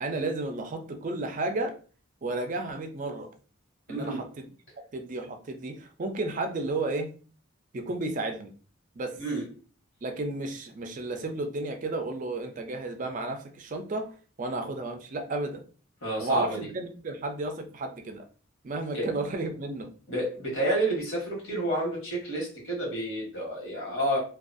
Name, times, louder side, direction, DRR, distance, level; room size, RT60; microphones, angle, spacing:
voice 1, 0.0-1.7 2.2-3.3 3.9-4.4 4.9-7.1 7.7-8.5 9.0-9.2 10.0-14.1 14.4-15.6 16.2-18.3 18.6-19.9, right 2 dB, 40° right, 6 dB, 0.4 m, -32 dB
voice 2, 3.9-4.2 9.2-9.5 16.0-16.7 18.9-19.1 20.1-24.2, right 1 dB, 65° left, -2 dB, 1.2 m, -30 dB
2.5 x 2.2 x 2.5 m, 0.39 s
head